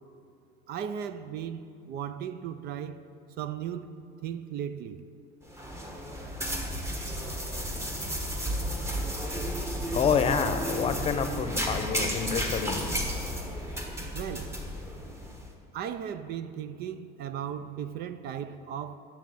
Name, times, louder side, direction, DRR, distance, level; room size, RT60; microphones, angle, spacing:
voice 1, 0.7-3.0 3.4-4.0 4.2-5.0 14.1-14.6 15.7-19.0, right 9 dB, 50° right, 0.5 m, -36 dB
sound 1, 5.5-15.5, equal, 15° right, 1.3 m, -33 dB
voice 2, 9.9-12.8, left 6 dB, 30° left, 0.8 m, -28 dB
11.0 x 7.4 x 7.7 m
cardioid pair, 140°, 20 cm